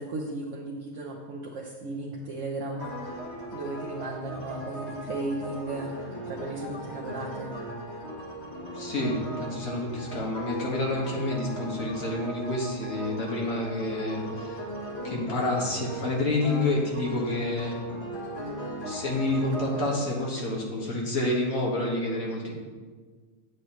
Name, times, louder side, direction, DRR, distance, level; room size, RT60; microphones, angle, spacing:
voice 1, 0.0-7.6, right 2 dB, 65° right, -2 dB, 1.2 m, -36 dB
sound 1, 2.8-19.9, equal, 50° left, 1.7 m, -38 dB
voice 2, 8.7-14.6 15.0-17.8 18.9-22.5, left 2 dB, 80° left, -3 dB, 2.2 m, -28 dB
8.9 x 8.4 x 3.1 m, 1.5 s
omnidirectional pair, 1.4 m